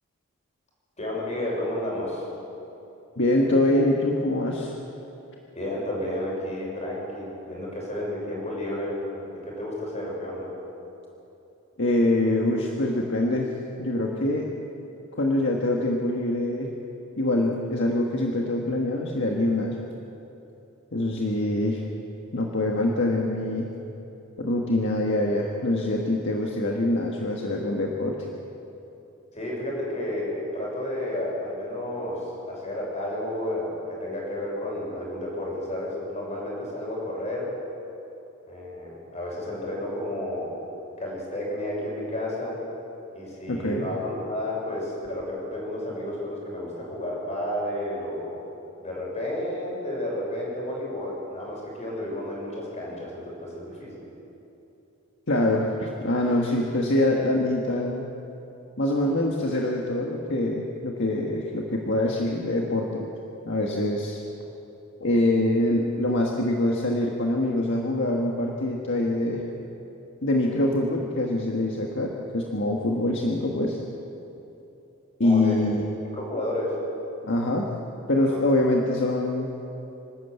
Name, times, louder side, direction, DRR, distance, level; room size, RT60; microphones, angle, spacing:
voice 1, 1.0-2.2 5.5-10.5 29.3-37.5 38.5-40.5 41.0-42.6 43.1-48.4 48.8-54.0 75.2-75.6 76.1-76.8 78.2-78.4 78.7-78.8, left 1 dB, 35° left, -3 dB, 6.5 m, -31 dB
voice 2, 3.2-4.7 11.8-13.5 13.8-14.5 15.2-16.7 17.2-19.8 20.9-21.9 22.3-23.7 24.4-28.1 43.5-43.8 55.3-58.1 58.8-63.1 63.4-64.2 65.0-69.4 70.2-73.8 75.2-75.8 77.2-77.7 78.1-79.5, left 1 dB, 60° left, -1 dB, 1.6 m, -24 dB
26.0 x 12.5 x 8.3 m, 2.9 s
head